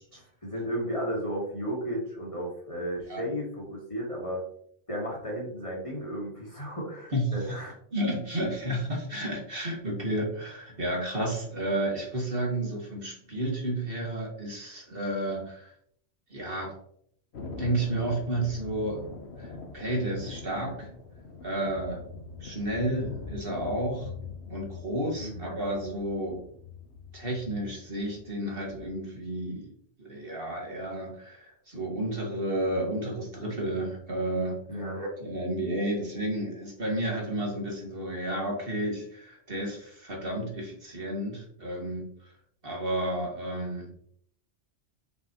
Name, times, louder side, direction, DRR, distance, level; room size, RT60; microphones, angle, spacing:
voice 1, 0.1-4.4 4.9-7.8 25.2-25.6 34.7-35.0, equal, 25° left, -3 dB, 2.3 m, -34 dB
voice 2, 7.9-15.7 16.3-16.7 17.6-19.0 19.4-20.9 21.4-22.0 22.4-24.1 24.5-26.5 27.1-29.7 30.0-34.6 34.9-42.3 42.6-43.9, right 1 dB, 50° right, -2 dB, 2.1 m, -31 dB
Thunder, 17.3-28.9, left 4 dB, 65° left, 1.2 m, -43 dB
7.5 x 5.7 x 3.0 m, 0.66 s
omnidirectional pair, 1.2 m